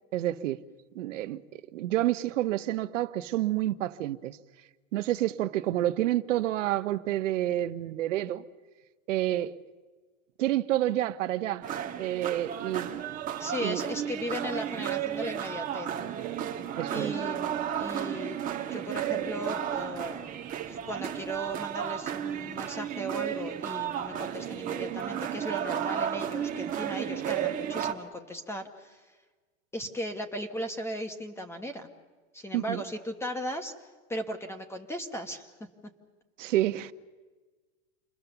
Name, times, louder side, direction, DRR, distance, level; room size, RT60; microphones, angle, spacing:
voice 1, 0.1-0.6 0.9-1.4 1.7-4.4 4.9-8.4 9.1-9.5 10.4-11.6 12.0-13.0 13.6-13.8 16.8-17.1 32.5-32.8 36.4-36.9, right 14 dB, 70° right, 1.1 m, -29 dB
sound 1, 11.6-27.9, right 10 dB, 20° right, 1.3 m, -33 dB
voice 2, 13.4-15.9 16.9-18.4 18.7-20.2 20.7-29.1 29.7-31.9 32.3-33.7 34.1-35.7, equal, 5° left, 1.0 m, -37 dB
29.0 x 23.0 x 7.0 m
supercardioid pair, 155°, 39 cm